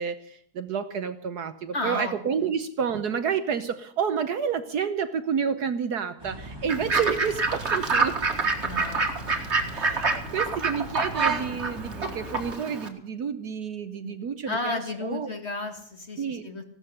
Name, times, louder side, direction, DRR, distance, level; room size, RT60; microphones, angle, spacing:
voice 1, 0.0-8.2 9.7-15.3 16.2-16.4, right 7 dB, 60° right, 10 dB, 1.3 m, -30 dB
voice 2, 1.7-2.1 8.6-9.6 10.1-10.5 14.0-16.6, left 2 dB, 35° left, 5 dB, 2.2 m, -34 dB
sound 1, 6.2-12.5, right 1 dB, 15° right, 1.8 m, -41 dB
Fowl / Bird, 6.7-12.9, right 4 dB, 35° right, 2.0 m, -27 dB
16.5 x 12.5 x 6.6 m, 0.65 s
omnidirectional pair, 2.1 m